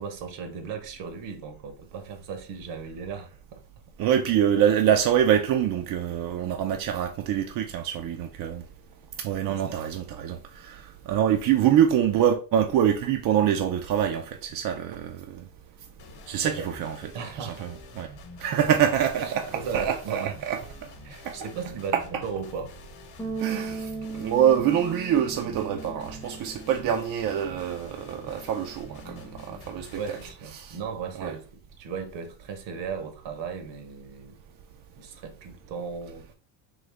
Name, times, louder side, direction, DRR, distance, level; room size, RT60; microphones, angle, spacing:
voice 1, 0.0-3.6 9.5-9.8 16.3-16.7 17.1-17.7 19.2-20.4 21.0-22.7 29.9-34.4 35.0-36.3, right 6 dB, 60° right, 1.0 m, -36 dB
voice 2, 4.0-8.6 9.2-15.5 16.3-17.1 17.4-18.1 18.4-20.9 21.2-21.4 21.9-22.0 23.4-30.0 30.5-30.8 31.2-31.3, right 9 dB, 45° right, 0.5 m, -25 dB
sound 1, 16.0-30.3, left 3 dB, 50° left, 1.0 m, -47 dB
Bass guitar, 23.2-29.4, right 3 dB, 5° left, 0.7 m, -39 dB
3.9 x 2.7 x 3.3 m
supercardioid pair, 105°, 49 cm